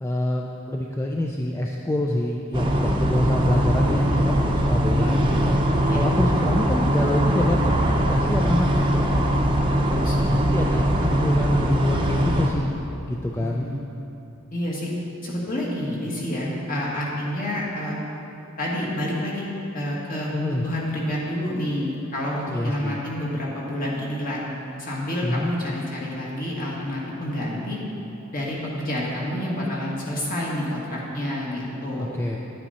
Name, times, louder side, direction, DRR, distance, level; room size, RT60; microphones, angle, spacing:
voice 1, 0.0-5.5 5.9-9.1 10.2-12.7 13.1-13.7 20.3-20.6 22.5-23.0 25.2-25.5 32.0-32.4, left 1 dB, 10° left, 0 dB, 0.4 m, -26 dB
sound 1, 2.5-12.5, equal, 25° right, 0.8 m, -21 dB
voice 2, 4.9-5.4 5.9-6.1 9.7-10.3 13.4-13.8 14.5-14.9 15.2-18.0 18.6-19.4 19.7-24.4 24.8-27.8 28.3-32.1, left 1 dB, 40° left, -4 dB, 2.0 m, -29 dB
10.5 x 8.9 x 4.2 m, 2.9 s
head